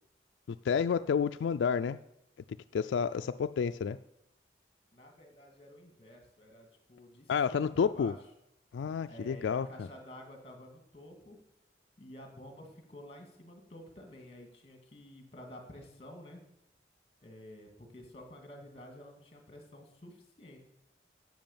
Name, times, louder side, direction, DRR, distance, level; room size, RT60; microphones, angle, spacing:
voice 1, 0.5-2.0 2.7-4.0 7.3-8.1 8.7-9.9, left 6 dB, 85° left, 11 dB, 0.3 m, -30 dB
voice 2, 4.9-8.2 9.1-11.4 12.0-16.4 17.2-20.6, left 1 dB, 35° left, 3 dB, 2.3 m, -51 dB
10.5 x 7.5 x 7.4 m, 0.84 s
head